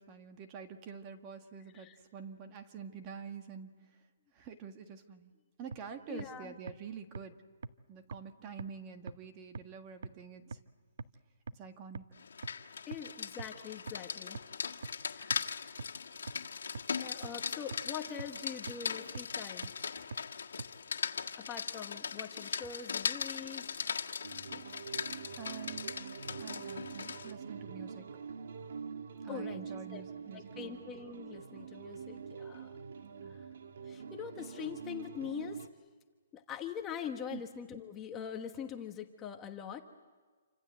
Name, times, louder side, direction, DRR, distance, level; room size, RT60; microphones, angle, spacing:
voice 1, 0.0-3.8 4.3-5.3 5.6-7.4 7.9-10.6 11.5-12.1 25.3-25.9 26.4-28.1 29.2-30.8 33.0-33.4 37.3-37.4, right 6 dB, 25° right, 6 dB, 1.7 m, -47 dB
sound 1, 5.7-5.8 6.2-6.3 6.7-6.8 7.1-7.2 7.6-7.7 8.1-8.2 8.6-8.7 9.1-9.2 9.5-9.6 10.0-10.1 10.5-10.6 11.0-11.1 11.5-11.6 11.9-12.0 12.4-12.5 12.9-13.0 13.4-13.5 13.9-14.0 14.3-14.4 14.8-14.9 15.3-15.4 15.8-15.9 16.3-16.4 16.7-16.8 17.2-17.3 17.7-17.8 18.2-18.3 18.7-18.8 19.1-19.2 19.6-19.7 20.1-20.2 20.6-20.7, right 4 dB, 85° right, 0.9 m, -40 dB
voice 2, 6.1-6.5 12.9-14.4 15.1-15.4 16.9-19.7 21.4-23.7 29.3-29.6 29.9-30.0 30.3-32.7 33.3-33.4 33.8-35.7 36.3-39.8, left 8 dB, 15° left, 4 dB, 1.2 m, -43 dB
Rain, 12.2-27.3, left 6 dB, 90° left, 1.7 m, -39 dB
sound 2, 24.2-35.7, right 6 dB, 65° right, 1.6 m, -45 dB
28.5 x 25.5 x 7.8 m, 1.4 s
hypercardioid pair, 165°, 0 cm